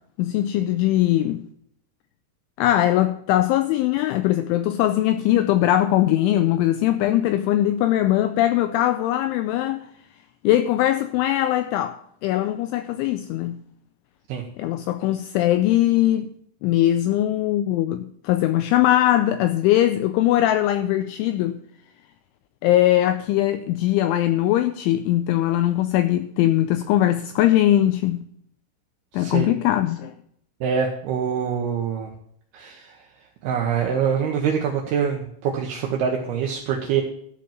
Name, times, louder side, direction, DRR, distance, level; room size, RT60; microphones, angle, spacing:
voice 1, 0.2-1.5 2.6-9.9 10.4-13.6 14.6-16.3 16.6-21.6 22.6-28.2 29.1-30.1, left 13 dB, 85° left, 2.7 m, -21 dB
voice 2, 29.1-29.5 30.6-32.1 32.5-32.9 33.4-37.0, right 7 dB, 75° right, 2.4 m, -24 dB
13.5 x 5.3 x 7.2 m
omnidirectional pair, 6.0 m